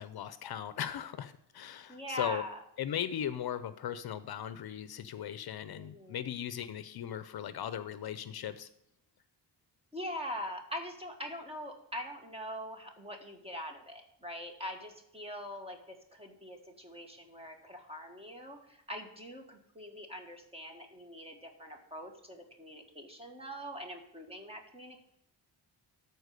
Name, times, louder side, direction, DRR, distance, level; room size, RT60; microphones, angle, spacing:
voice 1, 0.0-2.4 2.8-8.7, left 10 dB, 60° left, 13 dB, 0.7 m, -38 dB
voice 2, 1.9-2.6 5.7-6.3 9.9-25.1, equal, 15° right, 3 dB, 1.6 m, -43 dB
13.0 x 4.6 x 6.6 m, 0.78 s
wide cardioid pair, 150°, 42 cm